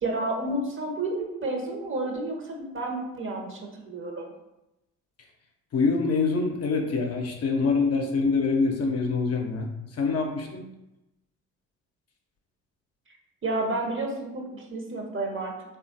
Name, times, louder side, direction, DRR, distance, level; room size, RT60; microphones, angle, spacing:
voice 1, 0.0-4.3 13.4-15.8, right 2 dB, 35° right, 0 dB, 0.8 m, -31 dB
voice 2, 5.7-10.7, left 4 dB, 45° left, 2 dB, 0.6 m, -25 dB
3.0 x 2.4 x 2.6 m, 0.91 s
hypercardioid pair, 50°, 36 cm